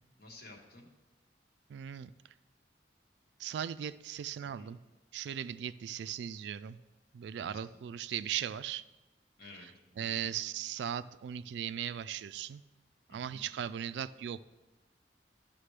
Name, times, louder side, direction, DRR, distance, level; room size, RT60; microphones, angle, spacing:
voice 1, 0.2-0.9 4.4-4.7 7.4-7.6 9.4-10.2 13.1-13.4, left 2 dB, 60° left, 1 dB, 1.3 m, -53 dB
voice 2, 1.7-2.1 3.4-4.8 5.1-6.8 7.1-8.8 10.0-12.6 13.1-14.4, right 9 dB, 70° right, 14 dB, 0.3 m, -38 dB
13.0 x 5.9 x 3.3 m, 1.1 s
head